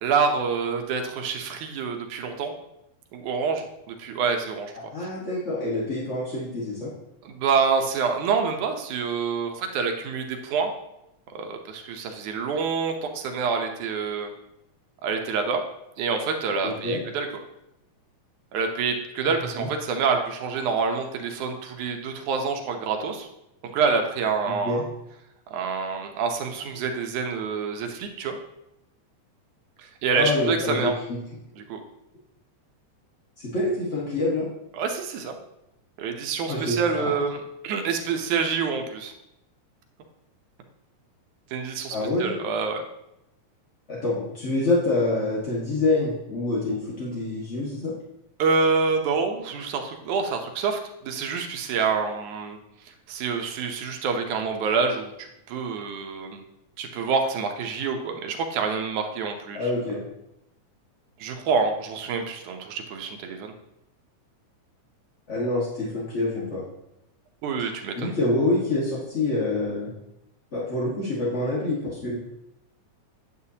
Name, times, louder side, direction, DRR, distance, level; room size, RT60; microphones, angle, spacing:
voice 1, 0.0-2.5 3.1-4.7 7.2-10.7 11.3-14.3 15.0-15.6 16.0-17.3 18.5-23.3 23.6-24.8 25.5-28.4 29.8-30.9 31.6-31.8 34.7-35.4 36.0-39.1 41.5-42.8 48.4-52.6 53.1-56.4 56.8-59.7 61.2-63.5 67.4-68.1, right 5 dB, 75° right, 4 dB, 2.2 m, -27 dB
voice 2, 4.7-6.9 16.6-17.0 19.6-19.7 24.6-24.8 30.1-30.9 33.4-34.5 36.5-37.1 41.9-42.3 43.9-47.9 59.5-60.0 65.3-66.6 67.9-69.9 70.5-72.1, left 2 dB, 35° left, -6 dB, 1.1 m, -26 dB
9.7 x 8.0 x 2.8 m, 0.85 s
omnidirectional pair, 3.6 m